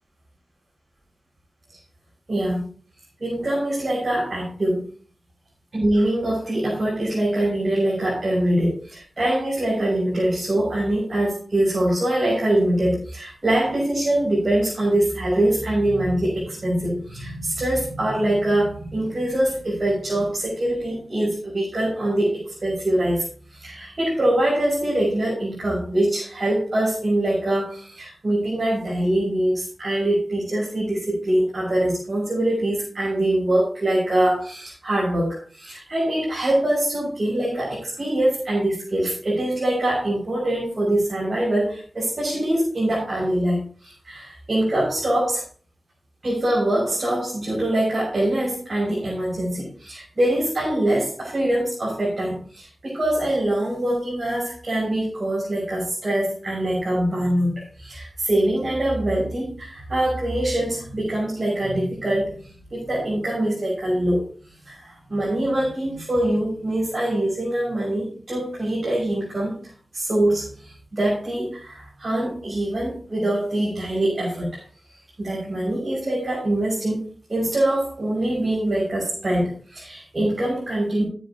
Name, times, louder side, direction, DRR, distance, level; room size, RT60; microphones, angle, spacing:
voice 1, 2.3-2.6 3.2-4.8 5.7-23.2 23.5-45.4 46.2-64.2 64.6-74.6 75.2-81.0, right 1 dB, 50° right, -6 dB, 6.7 m, -23 dB
14.5 x 10.0 x 3.0 m, 0.41 s
wide cardioid pair, 70°, 0 cm